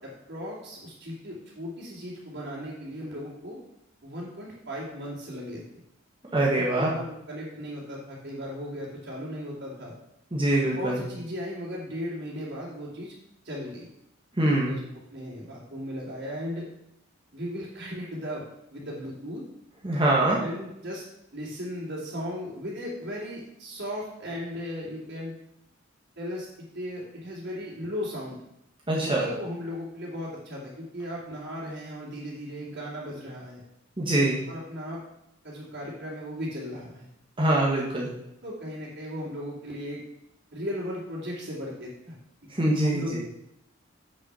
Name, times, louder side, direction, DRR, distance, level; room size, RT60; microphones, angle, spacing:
voice 1, 0.0-3.6 4.0-5.8 6.6-9.9 10.7-13.1 13.4-13.9 14.5-14.8 15.1-16.7 17.3-18.4 18.7-19.4 20.4-21.0 21.3-25.3 26.2-28.4 29.0-33.6 34.5-35.0 35.4-37.1 38.4-40.0 40.5-42.2 42.8-43.2, equal, 60° right, -8 dB, 2.8 m, -36 dB
voice 2, 6.3-6.9 10.3-11.0 14.4-14.7 19.8-20.4 28.9-29.2 34.0-34.4 37.4-38.1 42.5-43.2, right 1 dB, 25° right, -4 dB, 1.5 m, -23 dB
8.2 x 6.8 x 5.6 m, 0.82 s
head